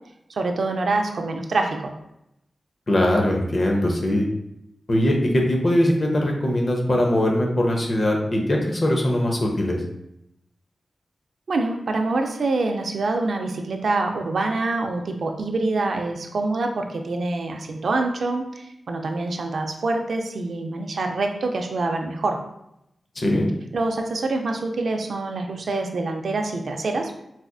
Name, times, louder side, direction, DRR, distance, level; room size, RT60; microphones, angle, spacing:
voice 1, 0.3-1.9 11.5-22.4 23.7-27.1, right 3 dB, 75° right, 3 dB, 0.4 m, -25 dB
voice 2, 2.9-4.3 4.9-9.8 23.2-23.5, left 1 dB, 45° left, 1 dB, 0.7 m, -21 dB
4.1 x 2.5 x 2.3 m, 0.81 s
wide cardioid pair, 80°, 0 cm